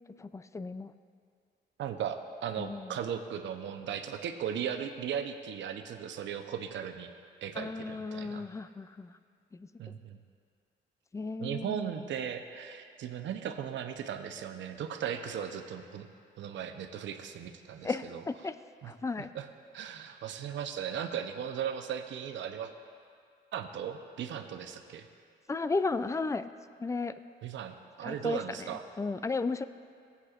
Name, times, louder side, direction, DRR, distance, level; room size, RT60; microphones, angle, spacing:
voice 1, 0.2-0.9 2.6-3.0 7.6-9.1 9.5-9.9 11.1-11.9 17.8-18.5 18.8-19.3 25.5-26.5 26.8-27.2 28.0-29.6, left 3 dB, 15° left, 12 dB, 0.3 m, -34 dB
voice 2, 1.8-7.1 7.4-8.5 9.8-10.2 11.4-16.1 16.4-18.2 18.8-18.9 19.2-19.5 19.7-22.7 23.5-25.1 27.4-28.8, right 8 dB, 70° right, 7 dB, 0.7 m, -37 dB
16.5 x 8.1 x 2.5 m, 2.2 s
cardioid pair, 90°, 20 cm